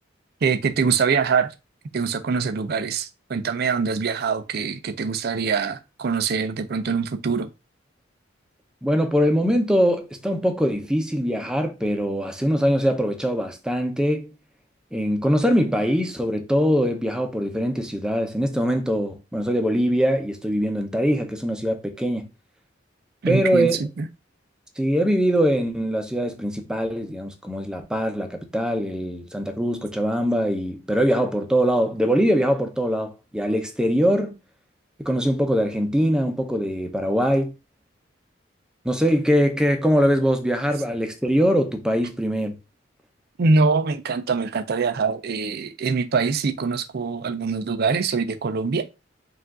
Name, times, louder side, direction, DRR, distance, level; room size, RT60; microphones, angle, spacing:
voice 1, 0.4-1.5 1.9-7.5 23.2-24.1 43.4-48.9, right 5 dB, 55° right, 0.4 m, -24 dB
voice 2, 8.8-14.3 14.9-22.3 23.3-23.8 24.8-34.4 35.0-37.5 38.8-42.6, equal, 5° right, 0.6 m, -22 dB
4.7 x 2.5 x 3.6 m
head